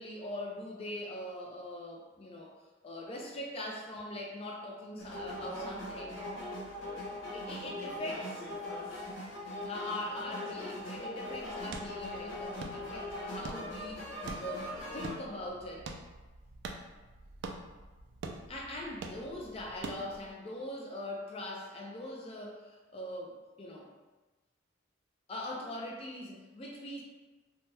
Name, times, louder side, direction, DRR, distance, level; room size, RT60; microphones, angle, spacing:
voice 1, 0.0-2.5 2.8-6.2 7.3-8.5 9.6-15.9 18.5-23.9 25.3-27.0, left 1 dB, 30° left, -1 dB, 0.4 m, -42 dB
sound 1, 5.0-15.1, left 1 dB, 90° left, 1.0 m, -40 dB
sound 2, 11.3-20.3, right 3 dB, 65° right, 0.3 m, -46 dB
2.8 x 2.2 x 3.2 m, 1.2 s
head